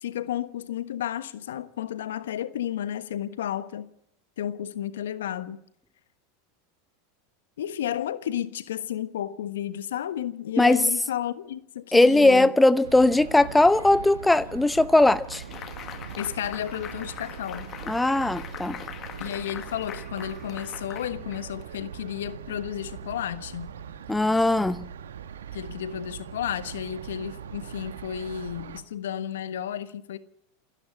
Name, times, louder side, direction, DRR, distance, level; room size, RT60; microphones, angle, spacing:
voice 1, 0.0-3.9 4.4-5.6 7.6-12.5 16.1-17.7 19.2-23.7 25.5-30.2, left 10 dB, 75° left, 1.3 m, -32 dB
voice 2, 11.9-15.4 17.9-18.8 24.1-24.9, left 2 dB, 5° left, 0.8 m, -19 dB
sound 1, 12.8-28.8, right 8 dB, 80° right, 1.4 m, -41 dB
sound 2, 15.3-21.8, left 9 dB, 35° left, 1.7 m, -42 dB
28.0 x 10.5 x 9.8 m
hypercardioid pair, 95°, 0 cm